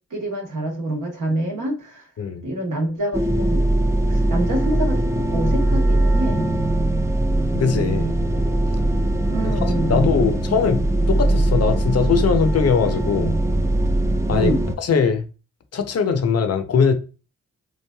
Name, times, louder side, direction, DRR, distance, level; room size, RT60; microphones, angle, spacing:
voice 1, 0.1-2.1 2.4-3.6 4.1-6.5 9.3-10.1 14.3-14.6, right 1 dB, 75° right, 1.0 m, -26 dB
sound 1, 3.1-14.8, right 1 dB, 10° right, 0.4 m, -21 dB
voice 2, 7.5-8.1 9.4-9.5 9.9-10.8 11.1-13.4 14.3-14.5 14.8-15.2 15.7-16.9, left 6 dB, 50° left, 0.6 m, -20 dB
3.1 x 2.4 x 2.2 m
cardioid pair, 45°, 32 cm